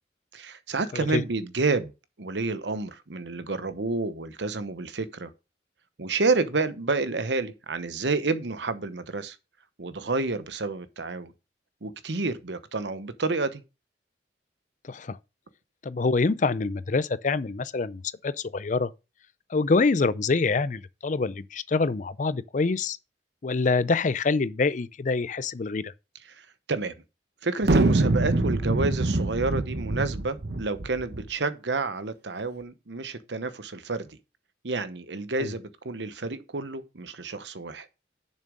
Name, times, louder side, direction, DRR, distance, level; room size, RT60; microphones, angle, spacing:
voice 1, 0.3-1.9 2.2-5.3 6.0-9.4 9.8-11.3 11.8-13.6 26.4-26.9 27.4-34.2 34.6-37.9, right 3 dB, 80° right, 0.9 m, -29 dB
voice 2, 14.8-15.2 15.8-18.9 19.5-23.0 23.4-25.9 35.4-35.5, left 4 dB, 45° left, 0.5 m, -26 dB
sound 1, 27.6-31.3, right 2 dB, 65° right, 0.9 m, -24 dB
7.2 x 6.4 x 5.2 m
head